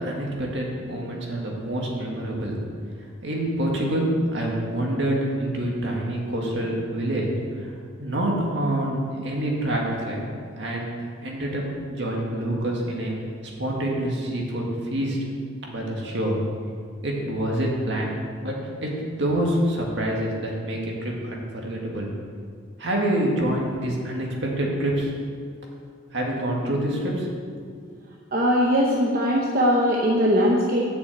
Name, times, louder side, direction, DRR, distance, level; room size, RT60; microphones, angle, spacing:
voice 1, 0.0-2.6 3.2-7.7 8.0-10.2 10.6-13.1 13.6-15.2 15.7-16.4 17.0-18.2 18.4-22.1 22.8-25.1 26.1-27.3 27.6-27.7, right 1 dB, 65° right, -2 dB, 2.0 m, -26 dB
voice 2, 28.3-30.8, equal, 45° right, -2 dB, 0.9 m, -20 dB
7.8 x 6.2 x 8.0 m, 2.2 s
head